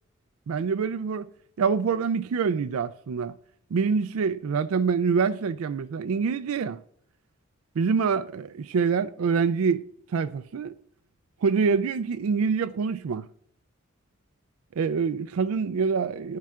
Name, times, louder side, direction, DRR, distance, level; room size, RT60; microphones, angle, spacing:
voice 1, 0.5-1.3 1.6-3.3 3.7-6.8 7.8-9.8 10.1-10.8 11.4-13.3 14.8-16.4, right 5 dB, 90° right, 0.4 m, -25 dB
12.0 x 10.5 x 2.4 m
head